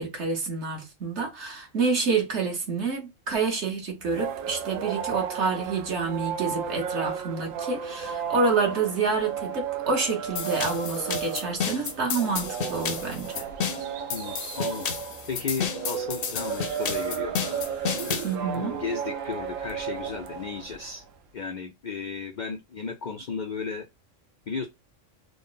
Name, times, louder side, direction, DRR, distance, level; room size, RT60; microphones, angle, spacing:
voice 1, 0.0-13.5 18.2-18.8, right 4 dB, 60° right, 1.4 m, -28 dB
sound 1, 4.0-21.0, right 7 dB, 75° right, 1.0 m, -34 dB
sound 2, 10.4-18.3, left 6 dB, 55° left, 0.7 m, -32 dB
voice 2, 14.1-14.9 15.3-17.3 18.5-21.0 21.3-23.9 24.5-24.7, left 5 dB, 80° left, 0.4 m, -34 dB
3.7 x 2.1 x 3.9 m
omnidirectional pair, 1.4 m